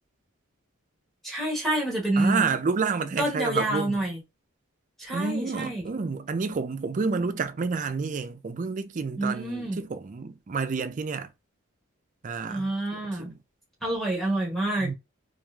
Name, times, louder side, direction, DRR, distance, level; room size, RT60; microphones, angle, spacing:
voice 1, 1.2-2.4 3.2-4.2 5.0-5.9 9.2-9.8 12.5-13.3 13.8-14.9, right 1 dB, ahead, 1.1 m, -28 dB
voice 2, 2.2-4.0 5.1-11.3 12.2-13.4 14.8-14.9, right 4 dB, 35° right, 0.4 m, -29 dB
3.0 x 2.4 x 2.3 m
head